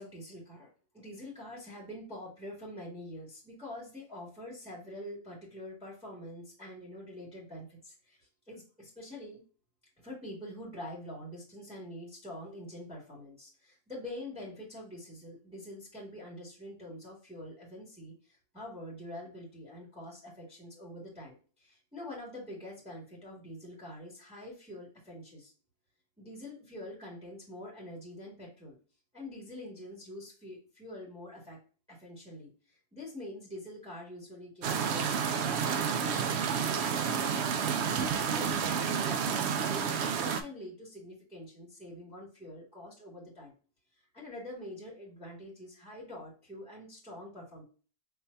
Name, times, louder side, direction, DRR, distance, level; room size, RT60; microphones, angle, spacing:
voice 1, 0.0-9.4 10.0-25.5 26.2-28.8 29.1-31.6 31.9-37.4 38.0-43.5 44.0-47.6, left 1 dB, 5° right, -5 dB, 1.9 m, -45 dB
sound 1, 34.6-40.4, right 7 dB, 65° right, 0.6 m, -30 dB
4.6 x 3.3 x 2.6 m, 0.37 s
omnidirectional pair, 1.6 m